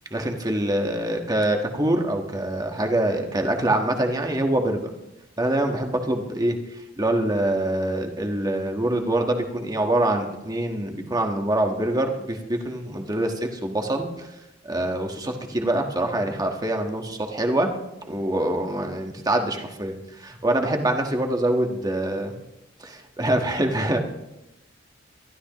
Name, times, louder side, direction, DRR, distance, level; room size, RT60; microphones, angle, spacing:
voice 1, 0.1-4.8 5.4-6.6 7.0-14.3 14.6-17.7 18.0-22.3 22.8-24.0, right 1 dB, 20° right, 3 dB, 1.5 m, -25 dB
23.0 x 12.5 x 3.1 m, 0.95 s
head